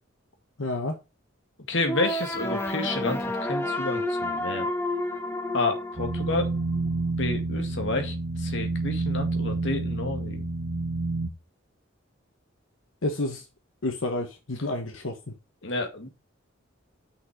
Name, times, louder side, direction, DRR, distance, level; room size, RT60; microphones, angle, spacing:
voice 1, 0.6-1.0 13.0-13.4 13.8-15.3, left 2 dB, 90° left, 1.2 m, -30 dB
voice 2, 1.7-4.7 5.5-6.5 7.2-10.4 15.6-16.1, left 2 dB, 65° left, 1.9 m, -30 dB
sound 1, 1.9-6.9, left 1 dB, 10° left, 1.0 m, -30 dB
sound 2, 6.0-11.3, right 2 dB, 40° right, 1.4 m, -29 dB
6.3 x 5.9 x 4.7 m
head